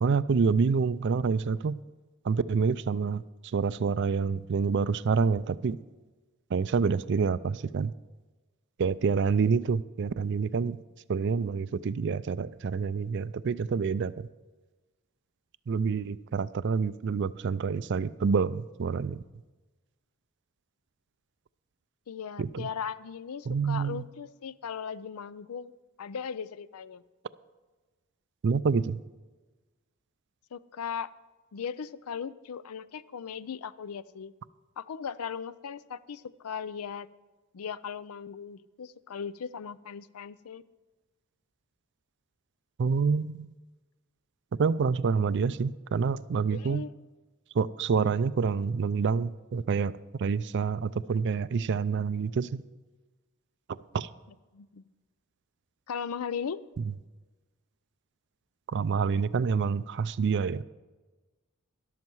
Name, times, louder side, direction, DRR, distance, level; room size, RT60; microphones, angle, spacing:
voice 1, 0.0-1.8 2.2-5.8 6.5-7.9 8.8-10.8 11.1-14.3 15.7-19.2 22.4-22.7 23.5-24.1 28.4-29.0 42.8-43.6 44.5-46.8 47.5-52.6 53.9-54.1 56.8-56.9 58.7-60.6, right 5 dB, 55° right, 17 dB, 0.4 m, -27 dB
voice 2, 22.1-25.7 26.0-27.0 30.5-31.1 31.5-34.3 34.8-37.1 37.5-40.6 46.5-46.9 54.5-54.9 55.9-56.6, left 7 dB, 80° left, 17 dB, 0.5 m, -38 dB
13.0 x 12.0 x 4.6 m, 1.2 s
head